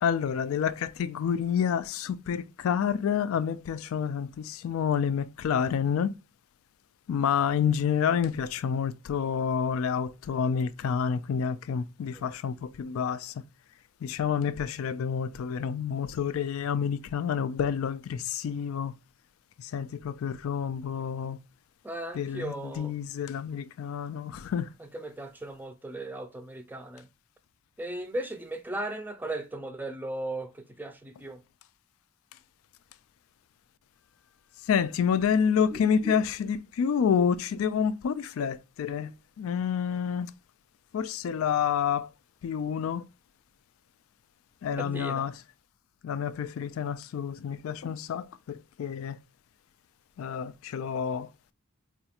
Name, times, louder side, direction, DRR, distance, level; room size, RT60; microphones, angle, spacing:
voice 1, 0.0-6.1 7.1-13.4 14.0-18.9 19.6-21.4 22.1-24.7 34.6-39.1 39.4-40.3 40.9-42.1 42.4-43.0 44.6-45.4 46.0-49.2 50.2-51.5, left 7 dB, 75° left, 0.3 m, -28 dB
voice 2, 21.8-22.9 24.9-27.0 27.8-30.5 30.8-31.4 35.7-35.8 36.0-36.2 44.7-45.3, right 1 dB, 10° right, 0.4 m, -36 dB
4.1 x 2.3 x 2.8 m
head